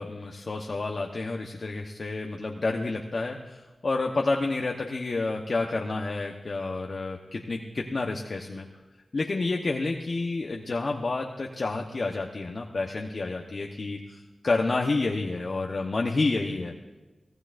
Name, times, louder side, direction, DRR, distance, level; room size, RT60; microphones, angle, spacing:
voice 1, 0.0-8.6 9.1-16.7, left 3 dB, 60° left, 1 dB, 1.0 m, -29 dB
23.5 x 16.0 x 2.6 m, 1.2 s
cardioid pair, 50°, 0 cm